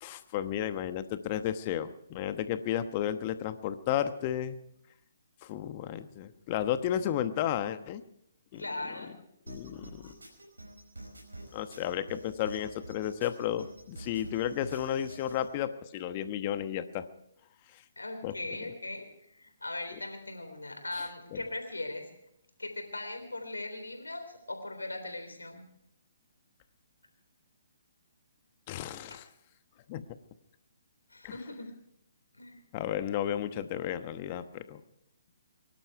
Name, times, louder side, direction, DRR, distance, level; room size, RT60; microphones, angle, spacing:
voice 1, 0.0-4.6 5.4-8.0 8.5-8.6 9.5-10.1 11.5-17.1 17.7-17.8 18.2-18.3 20.9-21.0 21.3-21.4 28.7-29.3 29.9-30.0 31.2-31.4 32.7-34.8, left 10 dB, 35° left, 11 dB, 1.1 m, -33 dB
voice 2, 8.5-9.1 18.0-19.1 19.3-22.1 22.6-25.6 29.1-29.2 31.1-31.7 32.3-32.6, left 2 dB, 85° left, 5 dB, 3.5 m, -39 dB
sound 1, 9.5-15.5, right 2 dB, 85° right, 4.9 m, -48 dB
23.5 x 12.0 x 4.7 m, 0.75 s
figure-of-eight pair, 135°, 0 cm